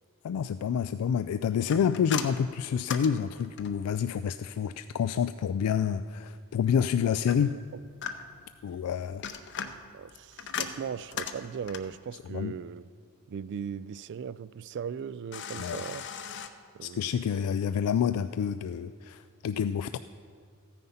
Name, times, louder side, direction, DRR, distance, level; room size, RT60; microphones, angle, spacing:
voice 1, 0.2-7.6 8.6-9.3 12.3-12.5 15.6-15.8 16.8-20.0, left 7 dB, 85° left, 0.3 m, -28 dB
sound 1, 1.7-3.9 7.3-8.5 9.0-12.0 15.3-16.5, left 7 dB, 55° left, 0.7 m, -38 dB
voice 2, 7.3-7.8 9.9-12.8 13.3-16.1 16.7-17.2, right 7 dB, 55° right, 0.3 m, -38 dB
14.5 x 9.3 x 5.6 m
head